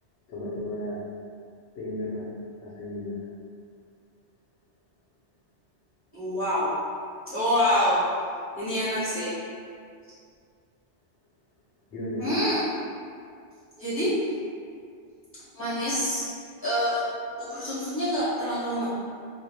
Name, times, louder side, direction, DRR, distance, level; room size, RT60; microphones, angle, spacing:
voice 1, 0.3-1.0 1.7-2.3 2.6-3.3 11.9-12.4, left 1 dB, 85° left, -6 dB, 0.9 m, -34 dB
voice 2, 6.1-6.7 7.3-8.0 8.6-9.3 12.2-12.6 13.8-14.1 15.5-16.3 16.6-18.9, equal, 15° right, -13 dB, 0.7 m, -26 dB
2.2 x 2.0 x 2.8 m, 2.3 s
omnidirectional pair, 1.1 m